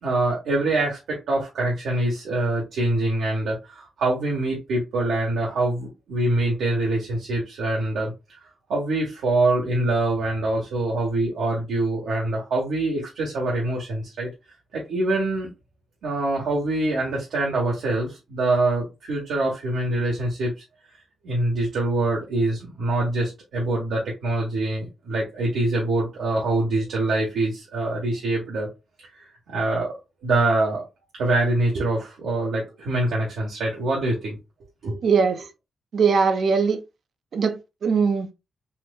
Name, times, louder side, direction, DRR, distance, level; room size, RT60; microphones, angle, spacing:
voice 1, 0.0-8.1 8.7-14.3 14.7-15.5 16.0-20.5 21.2-28.7 29.5-30.0 30.2-30.8 31.2-34.4 34.8-35.0, right 2 dB, 85° right, 1.1 m, -24 dB
voice 2, 35.0-35.4 35.9-36.8 37.3-38.3, right 5 dB, 70° right, 0.6 m, -21 dB
4.2 x 2.6 x 2.2 m
cardioid pair, 65°, 0 cm